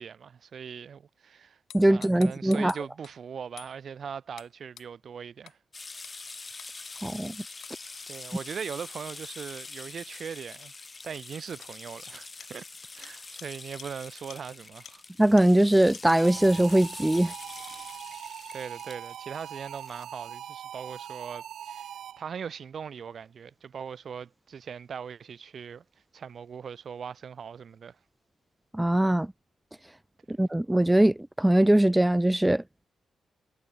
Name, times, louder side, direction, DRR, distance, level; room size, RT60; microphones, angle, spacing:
voice 1, 0.0-1.6 1.9-5.6 8.1-10.7 11.0-12.7 12.9-15.0 18.5-21.9 22.2-25.8 26.1-28.0, right 7 dB, 50° right, 8.0 m, -40 dB
sound 1, 1.7-3.1 3.6-3.7 4.4-4.5 4.8-4.9 5.5-5.6 6.0-6.2 6.6-6.7 7.6-7.8 9.6-9.8 10.6-10.7 11.1-11.2 11.6-11.7 12.4-12.5 13.0-13.1 13.4-13.5 13.8-13.9 14.3-14.4 14.8-14.9 15.4-15.5 15.9-16.0, left 10 dB, 75° left, 6.6 m, -48 dB
voice 2, 1.7-2.7 7.0-7.3 15.2-17.3 28.7-29.3 30.3-32.6, right 1 dB, 5° right, 2.0 m, -21 dB
sound 2, 5.7-20.0, left 3 dB, 25° left, 4.9 m, -45 dB
sound 3, 16.2-22.4, right 10 dB, 80° right, 4.1 m, -42 dB
cardioid pair, 125°, 0 cm